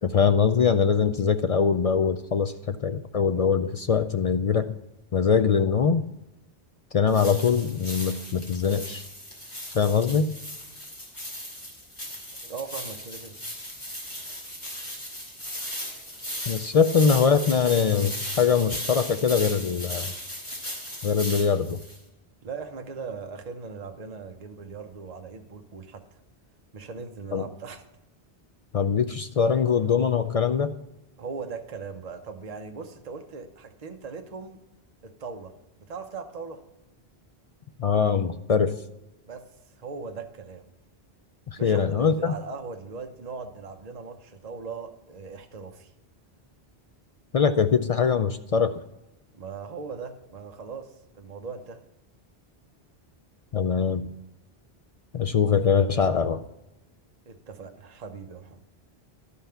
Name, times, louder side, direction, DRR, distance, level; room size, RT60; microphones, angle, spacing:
voice 1, 0.0-4.7 5.1-6.0 6.9-9.1 9.7-10.3 16.5-20.1 21.0-21.8 27.3-27.4 28.7-30.7 37.8-38.8 41.5-42.3 47.3-48.8 53.5-54.1 55.1-56.4, left 6 dB, 55° left, 10 dB, 0.4 m, -22 dB
sound 1, 7.1-22.0, equal, 30° left, 2.6 m, -37 dB
voice 2, 12.4-13.4 22.4-26.0 26.7-27.8 31.2-34.6 35.0-35.5 35.9-36.6 39.2-39.5 39.7-40.7 41.6-45.9 49.3-51.8 57.3-58.6, right 5 dB, 40° right, 4 dB, 0.9 m, -39 dB
12.0 x 5.7 x 5.6 m, 0.93 s
omnidirectional pair, 1.0 m